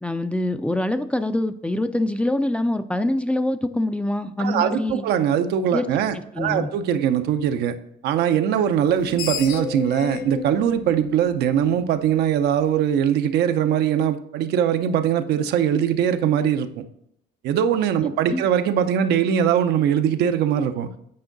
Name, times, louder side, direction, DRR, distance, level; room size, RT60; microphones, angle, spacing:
voice 1, 0.0-5.0 5.7-5.9 6.1-6.7 18.3-18.4, left 1 dB, 5° left, 10 dB, 0.4 m, -24 dB
voice 2, 4.4-7.8 8.0-16.8 17.4-20.9, right 9 dB, 80° right, 8 dB, 0.7 m, -21 dB
Screech, 8.8-12.1, left 8 dB, 65° left, 0.7 m, -33 dB
8.7 x 4.5 x 3.9 m, 0.74 s
cardioid pair, 110°, 17 cm